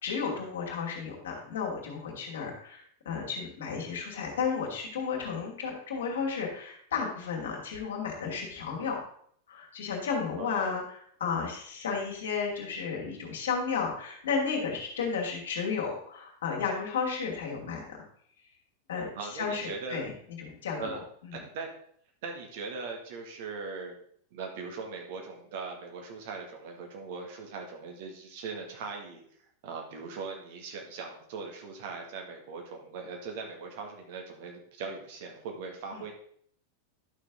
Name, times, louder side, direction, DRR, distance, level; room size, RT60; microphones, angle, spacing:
voice 1, 0.0-9.0 9.5-18.0 18.9-19.1 19.3-20.1 20.4-21.0 35.9-36.0, left 5 dB, 60° left, 0 dB, 2.7 m, -33 dB
voice 2, 10.3-10.8 19.1-20.0 20.8-21.0 21.3-21.7 22.2-24.0 24.3-29.2 29.6-36.1, right 4 dB, 50° right, 2 dB, 2.1 m, -40 dB
11.5 x 6.4 x 3.8 m, 0.62 s
figure-of-eight pair, 90°, 0 cm